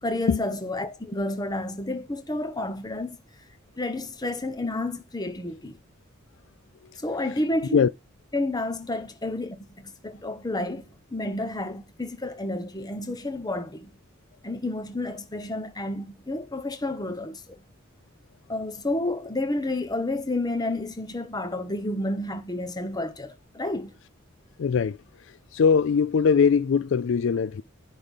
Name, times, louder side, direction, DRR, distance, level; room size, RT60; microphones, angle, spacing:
voice 1, 0.0-3.2 3.8-5.8 7.0-7.8 8.3-13.9 14.4-17.6 18.5-24.0, left 2 dB, 20° left, 1.1 m, -30 dB
voice 2, 24.6-25.0 25.5-27.6, left 6 dB, 60° left, 0.4 m, -21 dB
10.5 x 3.7 x 5.5 m
head